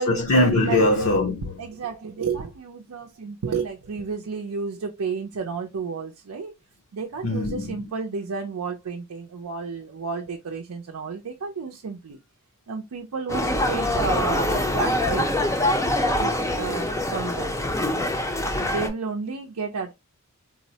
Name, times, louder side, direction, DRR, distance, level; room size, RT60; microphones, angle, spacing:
voice 1, 0.0-1.5 7.2-7.9, left 1 dB, 65° left, 0.6 m, -21 dB
voice 2, 1.6-6.5 6.9-12.2 12.7-15.3 16.2-17.5 18.6-19.9, right 5 dB, 80° right, 0.5 m, -31 dB
sound 1, 13.3-18.9, left 1 dB, 15° left, 0.5 m, -24 dB
4.0 x 2.0 x 2.7 m
head